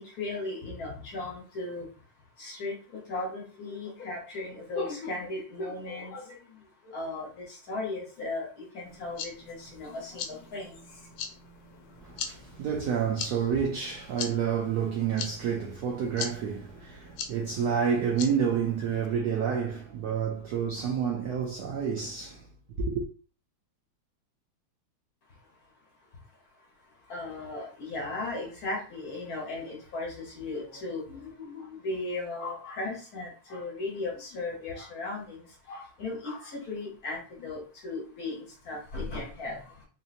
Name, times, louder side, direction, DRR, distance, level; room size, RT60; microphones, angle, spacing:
voice 1, 0.2-1.8 2.4-2.7 3.1-6.2 6.9-8.5 8.7-10.7 27.1-35.4 35.7-39.6, left 2 dB, 55° left, 1.3 m, -36 dB
sound 1, 8.9-19.1, left 6 dB, 75° left, 1.3 m, -42 dB
voice 2, 12.0-22.5 22.8-23.0, right 7 dB, 80° right, 0.9 m, -29 dB
3.9 x 2.8 x 2.4 m
omnidirectional pair, 2.2 m